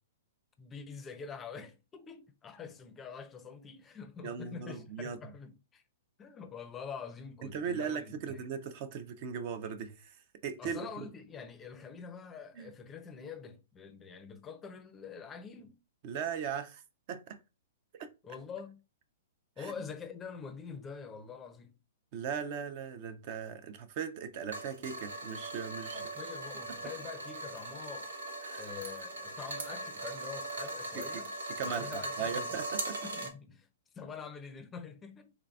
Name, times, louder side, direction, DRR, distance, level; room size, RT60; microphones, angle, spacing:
voice 1, 0.6-5.8 6.2-8.5 10.6-15.8 18.2-18.8 19.6-21.8 25.9-28.1 28.6-31.3 31.6-32.6 33.0-33.7 33.9-35.3, left 6 dB, 20° left, 0.5 m, -45 dB
voice 2, 4.2-5.2 7.4-11.1 12.6-12.7 16.0-16.8 17.1-17.4 17.9-18.1 19.6-19.7 22.1-26.0 28.4-28.7 31.0-31.2 31.5-31.9 32.2-33.0, right 7 dB, 45° right, 0.5 m, -38 dB
sound 1, 24.5-33.3, right 2 dB, 90° right, 0.9 m, -40 dB
3.8 x 3.3 x 2.3 m
hypercardioid pair, 140°, 0 cm